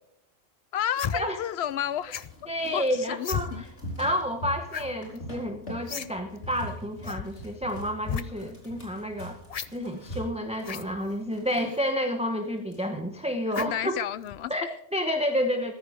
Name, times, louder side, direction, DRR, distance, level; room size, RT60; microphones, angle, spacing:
voice 1, 0.7-2.2 2.7-3.6 13.6-14.5, left 10 dB, 70° left, 0.8 m, -31 dB
sound 1, 1.0-1.2 2.1-2.4 3.2-3.4 4.7-4.9 5.2-5.3 5.9-6.1 6.4-6.5 7.0-7.2 8.0-8.2 9.5-9.7 10.6-10.9 11.7-11.8 13.5-13.8 14.3-14.4, left 8 dB, 45° left, 0.5 m, -33 dB
sound 2, 1.6-11.9 12.4-12.5 12.6-13.3 13.7-14.1, equal, 85° left, 4.7 m, -42 dB
voice 2, 2.5-3.7 4.0-9.4 9.7-14.0 14.5-15.7, equal, 5° right, 0.9 m, -30 dB
15.0 x 14.0 x 3.6 m
omnidirectional pair, 1.2 m